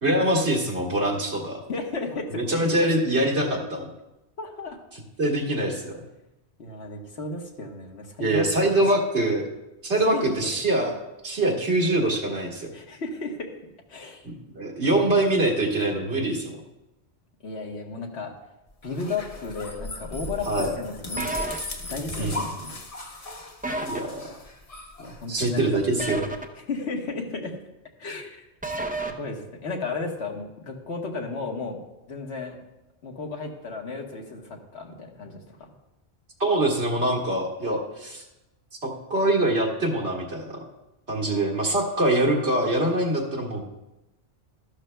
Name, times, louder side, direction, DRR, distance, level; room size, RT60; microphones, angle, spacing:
voice 1, 0.0-1.6 2.3-3.9 5.2-6.0 8.2-9.4 9.8-10.9 11.2-12.7 14.2-16.6 20.4-20.7 22.2-22.4 23.8-24.4 25.3-26.3 36.4-38.2 38.8-40.6 41.1-43.6, right 1 dB, 80° right, -2 dB, 2.0 m, -24 dB
voice 2, 1.7-3.0 4.4-4.8 6.6-8.7 10.1-10.3 12.7-13.5 13.9-14.3 14.8-15.2 17.4-18.3 18.8-21.6 21.9-22.7 23.1-23.3 25.0-25.8 26.5-27.6 28.0-28.5 29.2-31.8 32.1-32.6 33.0-35.7 41.3-41.7, left 3 dB, 75° left, 2 dB, 1.5 m, -34 dB
sound 1, 18.8-25.8, left 2 dB, 35° left, 1.0 m, -37 dB
sound 2, 21.2-21.6 23.6-24.0 26.0-26.4 28.6-29.1, right 2 dB, 10° right, 0.4 m, -29 dB
13.5 x 11.5 x 2.2 m, 0.94 s
omnidirectional pair, 1.1 m